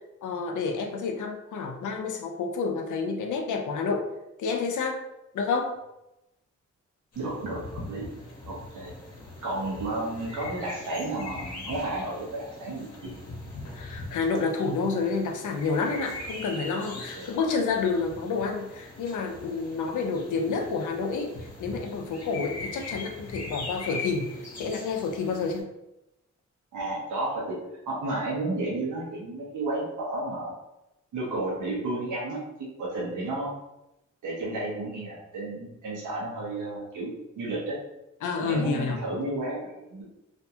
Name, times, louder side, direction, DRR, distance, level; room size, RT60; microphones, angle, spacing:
voice 1, 0.2-4.1 4.4-5.0 5.3-5.7 13.7-25.7 38.2-39.0, left 4 dB, 80° left, 3 dB, 0.5 m, -29 dB
sound 1, 7.1-25.6, left 2 dB, 55° left, 0.8 m, -41 dB
voice 2, 7.2-8.1 8.5-8.9 9.4-13.2 17.1-17.3 20.4-20.6 26.7-27.6 27.9-30.5 31.1-33.5 34.2-37.8 38.4-40.0, right 2 dB, 90° right, -4 dB, 0.8 m, -32 dB
2.5 x 2.3 x 2.7 m, 0.91 s
cardioid pair, 70°, 30 cm